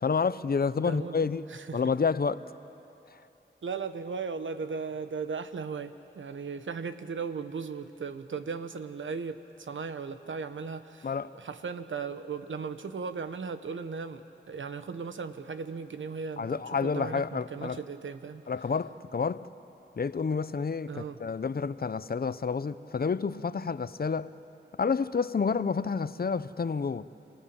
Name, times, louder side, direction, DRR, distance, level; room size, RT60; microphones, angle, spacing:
voice 1, 0.0-1.5 1.7-2.4 11.0-11.3 16.4-17.8 18.5-19.5 20.0-24.3 24.7-27.1, left 5 dB, 50° left, 0.7 m, -29 dB
voice 2, 0.8-1.8 3.6-18.4 20.9-21.2, right 5 dB, 90° right, 1.0 m, -37 dB
29.0 x 18.0 x 8.7 m
wide cardioid pair, 55°, 19 cm